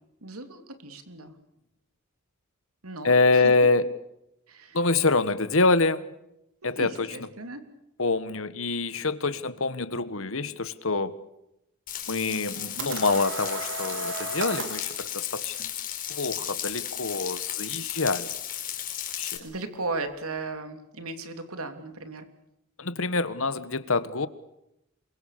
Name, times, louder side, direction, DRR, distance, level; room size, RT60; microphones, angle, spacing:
voice 1, 0.2-1.3 2.8-3.4 4.5-4.8 6.6-7.6 19.4-22.3, right 3 dB, 85° right, 8 dB, 3.2 m, -36 dB
voice 2, 3.0-3.9 4.7-6.0 6.6-7.2 8.0-11.2 12.1-15.7 16.1-18.3 19.2-19.4 22.8-24.3, left 3 dB, 65° left, 15 dB, 1.5 m, -25 dB
Frying (food), 11.9-19.4, left 10 dB, 40° left, 4.2 m, -35 dB
sound 1, 12.4-14.9, right 3 dB, 60° right, 4.0 m, -34 dB
28.0 x 23.5 x 6.8 m, 0.85 s
head